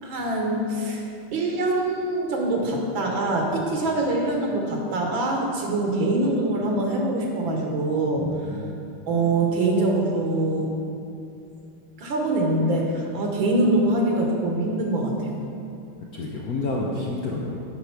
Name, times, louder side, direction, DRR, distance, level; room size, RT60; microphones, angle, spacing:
voice 1, 0.0-8.5 9.1-10.8 12.0-15.4, right 2 dB, 70° right, 0 dB, 1.8 m, -24 dB
voice 2, 8.1-8.8 16.1-17.6, left 2 dB, 65° left, -2 dB, 0.9 m, -30 dB
8.9 x 5.0 x 5.8 m, 2.6 s
omnidirectional pair, 2.3 m